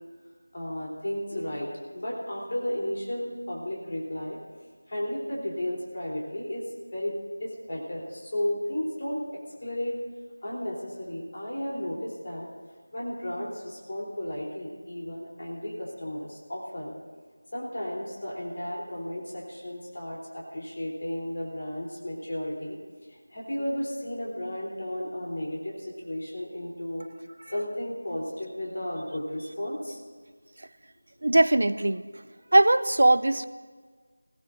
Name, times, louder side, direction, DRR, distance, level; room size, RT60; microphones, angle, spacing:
voice 1, 0.5-1.7 1.9-4.4 4.9-6.6 6.9-7.1 7.4-9.9 10.4-12.5 12.9-16.9 17.5-22.8 23.1-27.1 27.5-30.0, left 1 dB, 45° left, -3 dB, 3.5 m, -33 dB
voice 2, 31.2-32.0 32.5-33.5, right 2 dB, 50° right, 14 dB, 0.5 m, -20 dB
20.0 x 16.5 x 2.6 m, 1.5 s
figure-of-eight pair, 170°, 0 cm